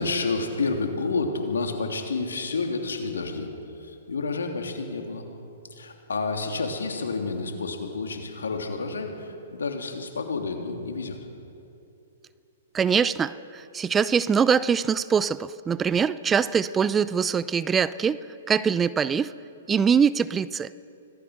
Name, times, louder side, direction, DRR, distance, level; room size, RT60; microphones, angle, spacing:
voice 1, 0.0-5.2 5.7-11.2, left 3 dB, 75° left, 3 dB, 3.1 m, -30 dB
voice 2, 12.7-18.2 18.5-19.3 19.7-20.7, right 6 dB, 15° right, 17 dB, 0.5 m, -23 dB
25.5 x 18.5 x 6.5 m, 2.7 s
hypercardioid pair, 120°, 0 cm